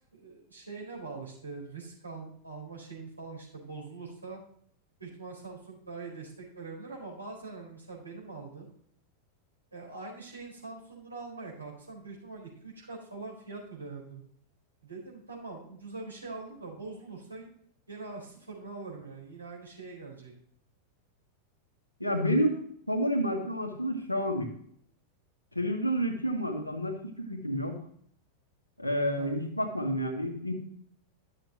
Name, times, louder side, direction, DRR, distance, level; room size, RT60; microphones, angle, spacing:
voice 1, 0.1-4.4 5.0-8.7 9.7-14.2 14.8-17.5 17.9-20.3 29.1-29.3, right 3 dB, 80° right, -2 dB, 4.1 m, -43 dB
voice 2, 22.0-22.6 22.9-24.5 25.5-27.8 28.8-30.5, equal, 85° left, 2 dB, 1.6 m, -29 dB
12.0 x 7.4 x 2.9 m, 0.63 s
figure-of-eight pair, 90°, 0 cm